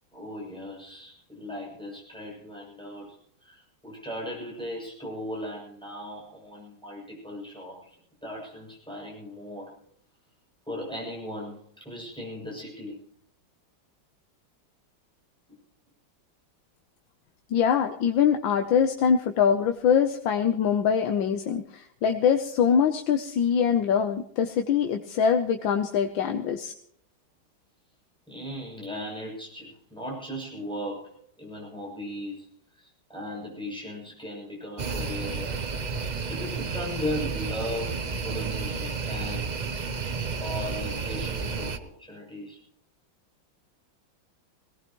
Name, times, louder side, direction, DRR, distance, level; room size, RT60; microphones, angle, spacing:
voice 1, 0.1-9.7 10.7-13.0 28.3-31.1 31.4-32.5 32.7-35.7 36.1-39.7 40.4-42.6, left 1 dB, ahead, -4 dB, 7.3 m, -37 dB
voice 2, 17.5-26.7, left 7 dB, 90° left, 6 dB, 1.6 m, -23 dB
sound 1, 34.8-41.8, right 5 dB, 85° right, 0.4 m, -31 dB
22.0 x 18.0 x 3.1 m, 0.62 s
omnidirectional pair, 2.0 m